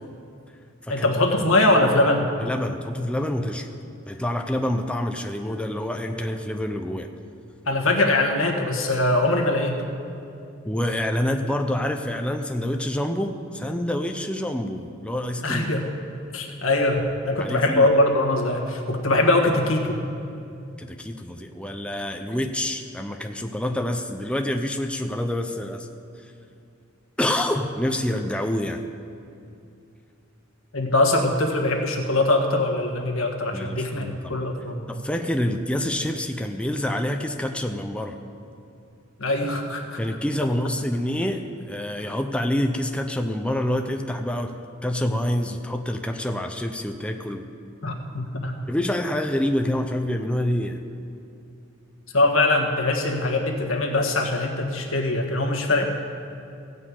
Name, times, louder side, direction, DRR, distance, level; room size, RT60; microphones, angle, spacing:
voice 1, 0.9-2.3 7.7-9.8 15.4-15.9 16.3-20.0 30.7-34.8 39.2-40.0 47.8-48.5 52.1-55.9, left 2 dB, 85° left, 2 dB, 1.5 m, -22 dB
voice 2, 2.4-3.7 4.1-7.1 10.7-15.7 17.4-17.9 20.8-25.9 27.2-28.8 33.5-34.4 34.9-38.2 40.0-44.5 44.8-47.5 48.7-50.8, left 1 dB, 5° left, 5 dB, 0.5 m, -27 dB
16.0 x 5.5 x 8.4 m, 2.6 s
head